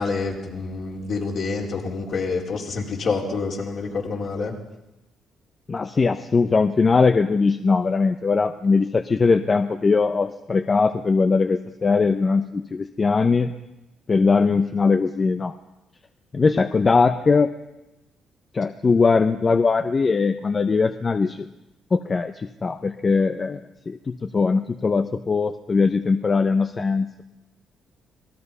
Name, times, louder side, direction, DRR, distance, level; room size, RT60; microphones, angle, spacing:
voice 1, 0.0-4.5, left 4 dB, 60° left, -1 dB, 4.7 m, -27 dB
voice 2, 5.7-13.5 14.1-15.5 16.3-17.5 18.5-21.5 21.9-27.2, left 4 dB, 35° left, 8 dB, 0.8 m, -20 dB
26.5 x 18.5 x 5.6 m, 0.96 s
cardioid pair, 90°, 0 cm